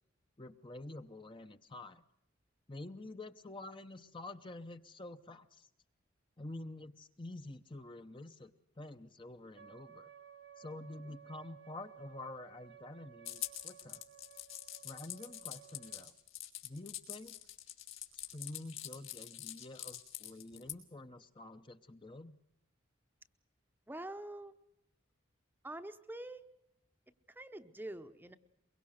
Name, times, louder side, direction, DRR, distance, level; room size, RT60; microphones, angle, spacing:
voice 1, 0.4-2.0 2.7-5.7 6.4-10.1 10.6-14.0 14.8-16.1 16.6-17.4 18.1-22.4, left 2 dB, 25° left, 8 dB, 0.8 m, -48 dB
Wind instrument woodwind instrument, 9.5-16.1, right 9 dB, 55° right, 1.0 m, -57 dB
sound 1, 13.3-20.7, left 13 dB, 80° left, 3.3 m, -44 dB
voice 2, 23.9-24.6 25.6-26.5 27.3-28.4, right 1 dB, 10° right, 10 dB, 0.8 m, -45 dB
23.0 x 23.0 x 6.5 m, 0.81 s
head